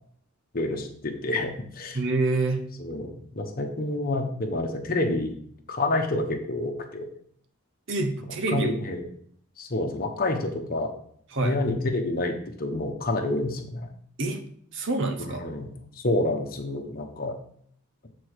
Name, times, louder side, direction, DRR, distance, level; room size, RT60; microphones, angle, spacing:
voice 1, 0.5-2.0 2.8-5.3 5.7-7.1 8.5-9.0 9.6-10.9 11.4-13.9 15.3-15.7 16.0-17.4, left 2 dB, 40° left, 4 dB, 1.1 m, -28 dB
voice 2, 1.9-2.7 7.9-8.8 11.3-11.5 14.2-14.4 14.7-15.4, right 2 dB, 55° right, 6 dB, 0.9 m, -26 dB
8.6 x 4.4 x 4.8 m, 0.63 s
head